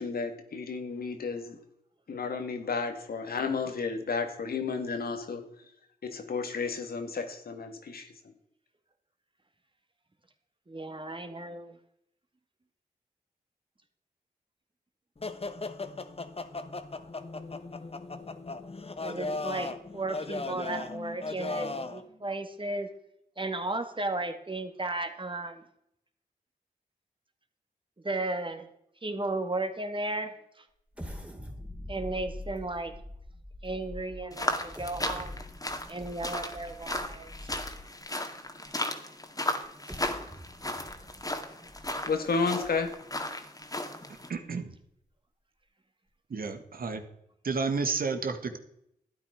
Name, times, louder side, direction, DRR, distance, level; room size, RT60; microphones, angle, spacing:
voice 1, 0.0-1.6 2.1-5.4 6.0-8.1 42.0-42.9, left 4 dB, 75° left, 1.8 m, -32 dB
voice 2, 10.7-11.8 19.0-22.9 23.4-25.7 28.0-28.7 29.0-30.7 31.9-32.9 33.6-35.4 35.9-37.5, right 2 dB, 35° right, 2.2 m, -34 dB
sound 1, 15.2-22.0, left 3 dB, 40° left, 1.2 m, -37 dB
sound 2, 30.9-38.1 38.7-38.8 39.6-43.2 43.6-43.7 44.2-44.4, left 1 dB, 10° right, 2.7 m, -45 dB
sound 3, 34.3-44.3, left 1 dB, 25° left, 2.1 m, -35 dB
voice 3, 44.3-44.8 46.3-47.0 47.4-48.6, right 4 dB, 70° right, 1.7 m, -31 dB
12.5 x 9.2 x 5.0 m
cardioid pair, 40°, 16 cm